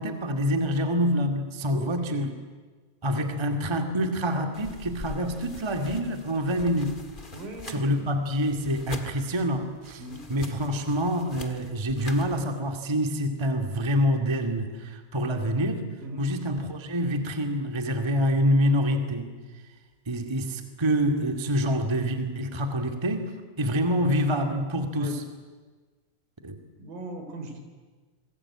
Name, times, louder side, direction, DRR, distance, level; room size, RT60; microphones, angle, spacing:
voice 1, 0.0-2.3 3.0-7.0 7.7-10.0 10.3-15.9 16.2-19.3 20.0-25.2 26.4-26.6, equal, 10° right, 5 dB, 1.4 m, -26 dB
voice 2, 1.7-2.3 7.3-8.1 10.0-10.3 16.0-16.3 21.5-21.7 25.0-25.1 26.8-27.6, right 1 dB, 75° right, 6 dB, 5.1 m, -39 dB
sound 1, 4.5-12.5, left 2 dB, 25° left, 1.1 m, -43 dB
27.5 x 21.5 x 8.8 m, 1.4 s
omnidirectional pair, 4.1 m